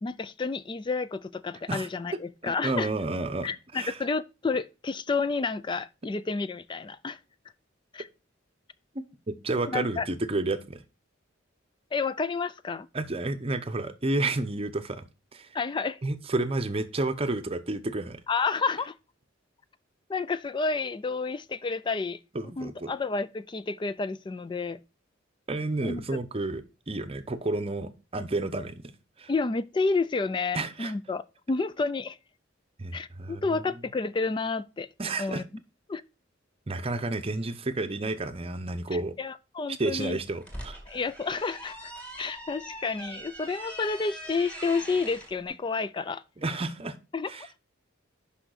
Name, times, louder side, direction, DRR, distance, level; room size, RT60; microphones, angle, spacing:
voice 1, 0.0-2.9 3.4-7.2 7.9-8.1 9.7-10.1 11.9-12.9 15.5-16.0 18.3-18.9 20.1-22.2 22.6-24.8 25.8-26.2 29.3-32.2 32.9-34.9 35.2-35.4 35.9-36.0 38.9-40.2 40.9-41.9 42.2-46.2 47.1-47.3, left 4 dB, 25° left, 0.3 m, -30 dB
voice 2, 2.4-4.0 8.9-10.8 12.9-15.0 15.3-15.6 16.0-18.2 22.3-22.9 25.5-29.3 30.5-30.9 32.8-33.6 35.0-35.4 36.7-39.2 39.7-40.8 46.4-47.0 47.3-47.6, right 2 dB, 30° right, 0.7 m, -31 dB
sound 1, 40.2-45.3, equal, 5° left, 2.4 m, -42 dB
6.3 x 5.7 x 6.3 m
head